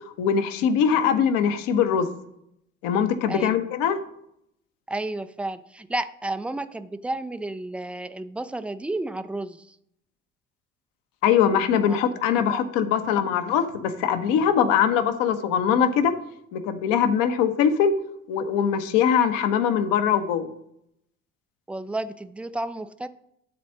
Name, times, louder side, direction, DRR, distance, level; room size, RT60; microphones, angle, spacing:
voice 1, 0.2-2.1 2.8-4.0 11.2-16.1 16.5-17.9 18.3-20.5, left 8 dB, 55° left, 9 dB, 1.1 m, -22 dB
voice 2, 4.9-9.8 11.9-12.0 12.5-12.6 21.7-23.1, right 2 dB, 5° right, 12 dB, 0.4 m, -32 dB
12.0 x 4.2 x 6.2 m, 0.76 s
figure-of-eight pair, 55°, 39 cm